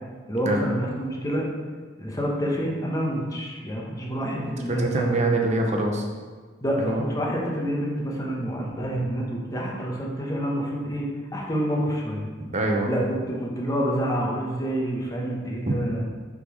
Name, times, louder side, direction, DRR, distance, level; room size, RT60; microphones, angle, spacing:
voice 1, 0.3-1.5 2.0-5.3 6.6-11.1 11.3-12.2 12.9-16.0, equal, 20° left, -2 dB, 1.0 m, -28 dB
voice 2, 4.4-6.1 6.8-7.1 12.5-12.9 15.7-15.8, right 2 dB, 35° right, 1 dB, 0.8 m, -25 dB
6.5 x 3.9 x 4.8 m, 1.5 s
head